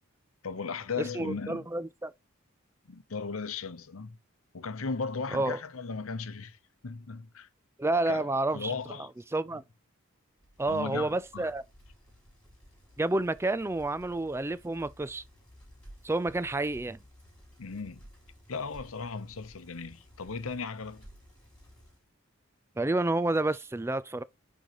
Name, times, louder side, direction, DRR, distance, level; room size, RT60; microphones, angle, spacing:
voice 1, 0.4-1.7 2.9-4.2 4.5-7.5 8.1-9.1 9.5-9.6 10.7-11.5 17.6-18.1 18.5-21.1, left 4 dB, 75° left, 0.8 m, -37 dB
voice 2, 1.0-2.1 5.3-5.6 7.8-8.7 9.3-9.6 10.6-11.6 13.0-15.2 16.0-17.0 22.8-24.2, right 2 dB, 10° right, 0.3 m, -29 dB
Bicycle, 10.4-22.1, equal, 5° left, 3.9 m, -55 dB
9.0 x 3.9 x 3.0 m
head